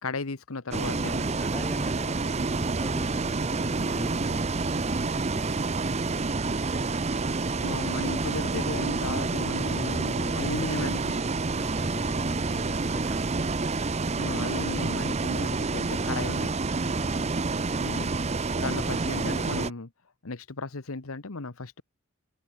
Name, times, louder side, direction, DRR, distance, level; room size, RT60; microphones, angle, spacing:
voice 1, 0.0-1.2 7.6-11.2 14.2-16.6 17.8-18.1 18.6-19.9 20.2-21.8, left 3 dB, 75° left, 1.3 m, -35 dB
voice 2, 0.7-6.2 11.6-13.5 16.8-17.2, equal, 5° left, 5.7 m, -41 dB
Bus, 0.7-19.7, right 3 dB, 30° right, 0.7 m, -28 dB
head